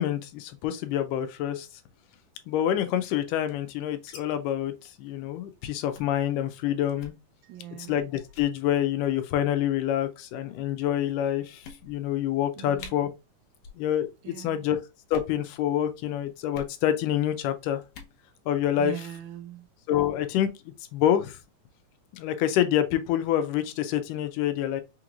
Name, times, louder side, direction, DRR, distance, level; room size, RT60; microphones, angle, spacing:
voice 1, 0.0-1.7 2.5-4.7 5.0-7.1 7.9-13.1 13.8-14.8 15.1-17.8 18.5-18.9 19.9-20.5 20.9-21.4 22.1-24.8, left 11 dB, 90° left, 2.2 m, -27 dB
sound 1, 2.8-4.2 4.4-4.5 4.8-5.0 5.3-5.5 5.9-6.2 6.9-7.2 7.8-8.0 8.3-8.5 9.4-9.8 10.5-10.6 11.1-11.2 11.6-12.2 12.4-12.5 12.8-12.9 13.6-13.8 14.1-14.5 15.0-15.4 16.5-16.7 17.8-18.2, left 5 dB, 70° left, 2.2 m, -46 dB
voice 2, 7.4-8.0 12.6-13.0 14.2-14.7 18.8-19.7, right 12 dB, 75° right, 2.0 m, -41 dB
5.9 x 3.0 x 2.4 m
omnidirectional pair, 3.7 m